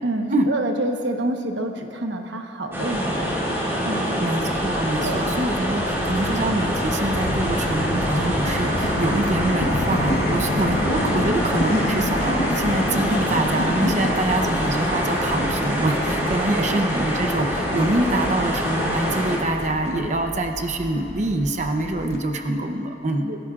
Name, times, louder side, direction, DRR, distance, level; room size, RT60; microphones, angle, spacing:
voice 1, 0.0-3.3 3.8-4.2 5.0-5.3 16.5-16.8 23.3-23.4, right 1 dB, 85° right, 4 dB, 1.2 m, -28 dB
sound 1, 2.7-19.4, equal, 15° right, 4.1 m, -25 dB
voice 2, 4.0-23.3, right 1 dB, 40° right, 3 dB, 0.8 m, -25 dB
sound 2, 4.4-22.2, left 1 dB, 65° left, 1.0 m, -29 dB
27.5 x 16.5 x 2.5 m, 2.9 s
head